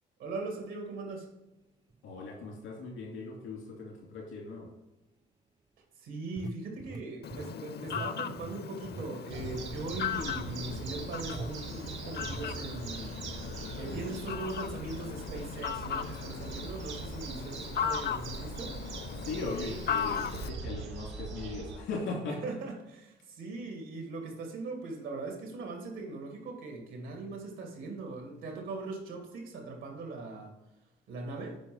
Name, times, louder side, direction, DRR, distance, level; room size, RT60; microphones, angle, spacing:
voice 1, 0.2-1.3 6.0-13.2 13.8-18.8 22.3-30.5 31.1-31.6, right 3 dB, 90° right, 2 dB, 2.3 m, -40 dB
Microphone Scratch, 1.9-2.0 2.6-2.8 6.4-7.6 7.9-8.1 8.4-12.5 12.8-13.0 13.3-13.5 13.8-14.0, right 3 dB, 20° right, 0.3 m, -44 dB
voice 2, 2.0-4.7 19.2-22.4, left 3 dB, 85° left, -1 dB, 2.7 m, -38 dB
Fowl, 7.2-20.5, left 8 dB, 55° left, 0.6 m, -38 dB
sound 1, 9.3-21.8, right 4 dB, 75° right, 2.3 m, -42 dB
9.1 x 5.3 x 5.5 m, 1.0 s
cardioid pair, 90°, 20 cm